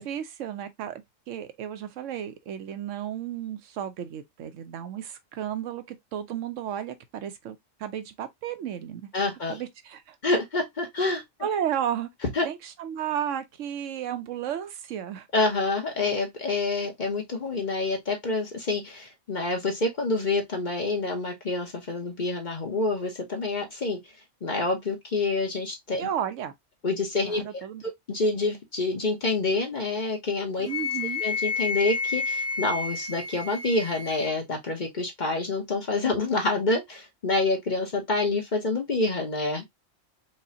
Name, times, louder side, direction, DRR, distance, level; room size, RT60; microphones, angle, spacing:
voice 1, 0.0-9.1 9.5-10.2 11.4-12.1 12.4-15.3 26.0-26.5 27.2-27.8 30.6-31.2, right 9 dB, 75° right, 0.9 m, -33 dB
voice 2, 9.1-9.6 10.2-11.2 12.3-12.5 15.3-24.0 24.4-26.1 26.8-27.5 27.8-30.7 31.2-39.6, left 3 dB, 40° left, 1.0 m, -27 dB
Wind instrument woodwind instrument, 30.7-34.3, left 4 dB, 15° left, 0.5 m, -30 dB
4.9 x 2.2 x 2.7 m
omnidirectional pair, 1.3 m